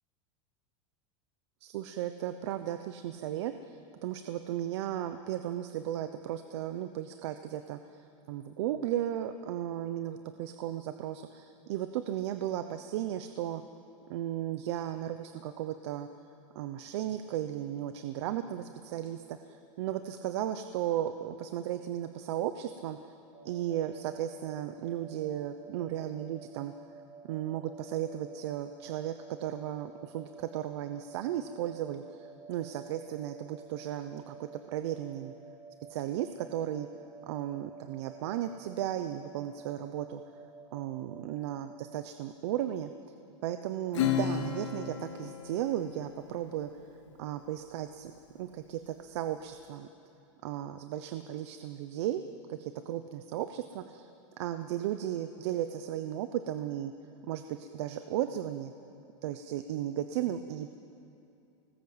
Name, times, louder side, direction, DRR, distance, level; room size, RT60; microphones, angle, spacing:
voice 1, 1.6-13.6 14.1-16.1 16.5-23.1 23.4-26.7 27.3-35.3 35.9-36.9 37.3-40.2 40.7-42.9 43.4-46.7 47.2-48.1 48.4-49.9 50.4-52.2 52.5-54.1 54.4-56.9 57.3-58.7 59.2-60.7, right 11 dB, 55° right, 9 dB, 0.9 m, -35 dB
sound 1, 23.3-42.0, right 5 dB, 30° right, 2.1 m, -52 dB
Acoustic guitar / Strum, 43.9-46.8, left 8 dB, 65° left, 2.2 m, -33 dB
24.0 x 19.0 x 8.0 m, 2.7 s
supercardioid pair, 170°, 16 cm